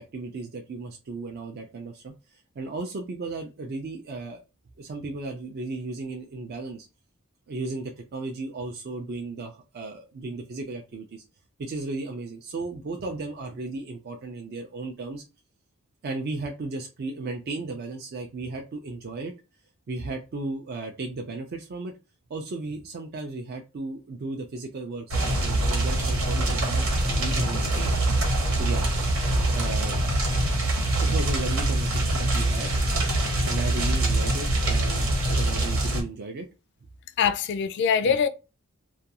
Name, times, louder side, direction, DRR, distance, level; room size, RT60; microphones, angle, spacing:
voice 1, 0.0-4.4 4.8-6.9 7.5-11.2 11.6-15.2 16.0-19.3 19.9-21.9 22.3-26.9 27.2-27.9 28.5-28.9 29.5-30.0 31.0-32.7 33.4-36.5 38.0-38.2, right 3 dB, 50° right, 0.4 m, -35 dB
sound 1, 25.1-36.0, right 1 dB, 90° right, 1.1 m, -24 dB
voice 2, 37.2-38.3, left 7 dB, 55° left, 0.3 m, -23 dB
2.4 x 2.2 x 2.7 m
head